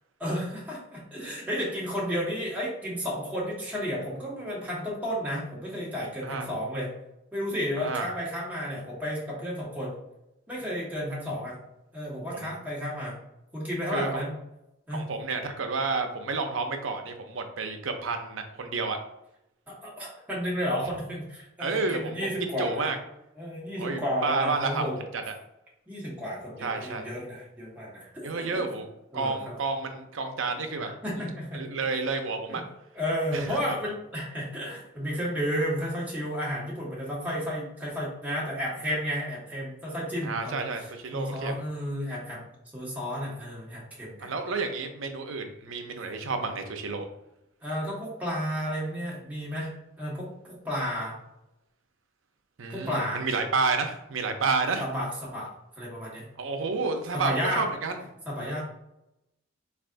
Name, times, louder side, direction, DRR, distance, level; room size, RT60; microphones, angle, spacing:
voice 1, 0.2-6.9 7.3-9.9 10.5-11.6 11.9-13.2 13.5-14.3 14.9-15.1 19.7-22.9 23.4-25.0 25.9-28.7 29.1-29.6 30.8-31.6 32.5-32.6 32.9-44.3 47.6-49.7 50.0-51.2 52.7-53.2 54.8-56.3 57.1-57.7 58.3-58.6, equal, 10° right, -6 dB, 1.2 m, -32 dB
voice 2, 7.8-8.1 12.3-12.5 13.9-14.2 14.9-19.0 21.6-23.0 23.8-24.8 25.1-25.3 26.6-27.1 28.2-28.9 29.1-30.9 31.5-32.6 33.3-33.6 40.2-41.5 44.2-47.1 52.6-54.8 56.4-58.0, right 4 dB, 80° right, 6 dB, 0.6 m, -30 dB
4.1 x 3.3 x 2.5 m, 0.86 s
head